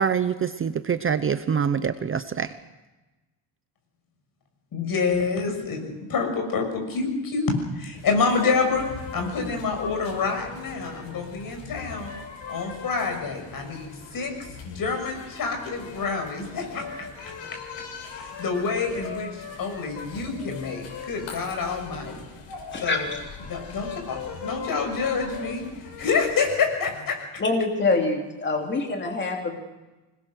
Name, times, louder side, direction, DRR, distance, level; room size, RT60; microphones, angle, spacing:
voice 1, 0.0-2.5, right 7 dB, 30° right, 11 dB, 0.8 m, -25 dB
voice 2, 4.7-8.9 9.1-12.1 12.5-14.3 14.6-17.6 18.0-22.2 22.8-23.1 23.5-25.7 26.0-27.3, left 4 dB, 50° left, 4 dB, 6.5 m, -27 dB
sound 1, 7.9-26.3, left 5 dB, 85° left, 6.8 m, -40 dB
voice 3, 22.7-23.2 27.4-29.6, left 3 dB, 25° left, 1 dB, 3.2 m, -25 dB
26.5 x 20.5 x 6.5 m, 1.1 s
cardioid pair, 140°, 44 cm